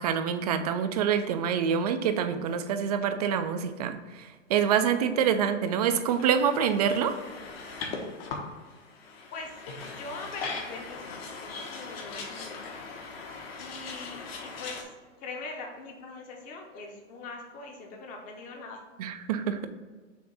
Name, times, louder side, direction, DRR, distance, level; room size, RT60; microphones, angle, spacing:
voice 1, 0.0-7.2 19.0-19.7, right 7 dB, 35° right, 9 dB, 0.4 m, -26 dB
sound 1, 6.1-14.8, left 4 dB, 50° left, 1.2 m, -40 dB
voice 2, 9.8-12.7 13.6-14.8 15.2-18.8, left 3 dB, 20° left, 2 dB, 0.8 m, -42 dB
6.9 x 2.5 x 5.4 m, 1.3 s
hypercardioid pair, 140°, 37 cm